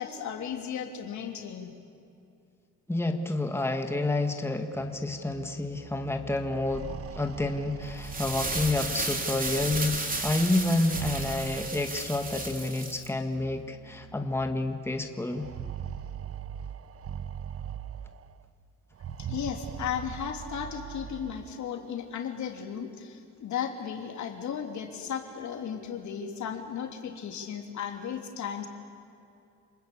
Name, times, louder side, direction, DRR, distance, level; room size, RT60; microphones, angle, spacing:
voice 1, 0.0-1.7 19.2-28.7, left 8 dB, 70° left, 4 dB, 3.1 m, -35 dB
voice 2, 2.9-6.9 7.2-15.5, left 2 dB, 10° left, 5 dB, 1.8 m, -29 dB
Musical instrument, 4.7-14.6, right 1 dB, 65° right, 4.8 m, -50 dB
sound 1, 6.6-9.4 10.7-12.4 13.4-13.5 13.9-14.0 15.2-18.4 18.9-21.5, right 8 dB, 50° right, 1.1 m, -40 dB
sound 2, 7.9-13.1, right 2 dB, 30° right, 3.4 m, -33 dB
29.0 x 20.5 x 8.5 m, 2.5 s
cardioid pair, 90°, 30 cm